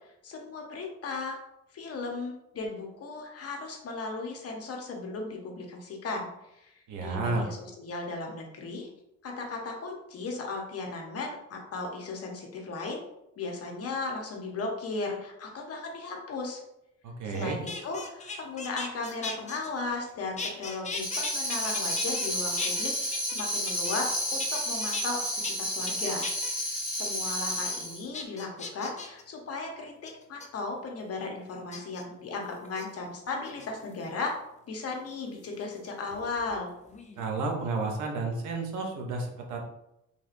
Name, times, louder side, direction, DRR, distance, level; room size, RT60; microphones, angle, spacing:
voice 1, 0.2-1.4 1.7-6.3 6.6-8.9 9.2-13.0 13.4-16.6 17.3-25.2 25.6-26.3 26.7-34.3 34.7-36.7, left 3 dB, 50° left, 1 dB, 0.8 m, -36 dB
voice 2, 6.9-7.4 17.0-17.6 37.2-39.6, right 3 dB, 80° right, 1 dB, 0.8 m, -31 dB
sound 1, 17.3-20.1 20.4-22.3 22.6-24.1 24.4-25.1 25.4-25.5 25.9-26.5 27.0-27.3 27.7-27.8 28.1-29.2 30.1-30.5 31.7-32.0 32.6-32.9 33.4-34.0 35.4-36.6 36.9-37.3, left 4 dB, 25° left, 0.4 m, -38 dB
Tambourine, 20.9-28.0, equal, 5° right, 1.3 m, -31 dB
3.3 x 2.7 x 2.5 m, 0.84 s
cardioid pair, 90°, 30 cm